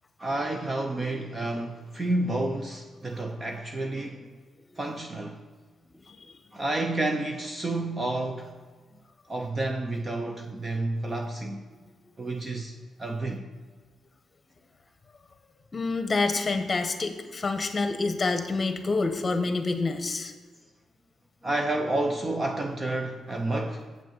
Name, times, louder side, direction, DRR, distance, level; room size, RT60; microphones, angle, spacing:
voice 1, 0.2-4.3 4.8-5.5 6.5-8.5 9.3-11.6 12.2-13.5 21.4-23.9, right 2 dB, 25° right, 0.6 m, -30 dB
voice 2, 6.0-6.4 15.7-20.3, left 3 dB, 25° left, 1.0 m, -27 dB
7.6 x 6.3 x 7.2 m
cardioid pair, 130°, 0 cm